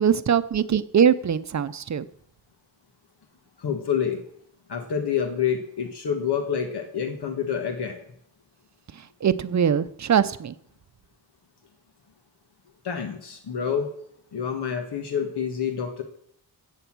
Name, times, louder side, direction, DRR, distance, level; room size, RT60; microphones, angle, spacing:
voice 1, 0.0-2.1 9.2-10.5, right 8 dB, 45° right, 13 dB, 0.6 m, -22 dB
voice 2, 3.6-4.2 4.7-8.0 12.8-13.9 14.3-16.0, left 7 dB, 85° left, 4 dB, 1.6 m, -27 dB
15.0 x 8.3 x 6.1 m, 0.68 s
wide cardioid pair, 135°, 39 cm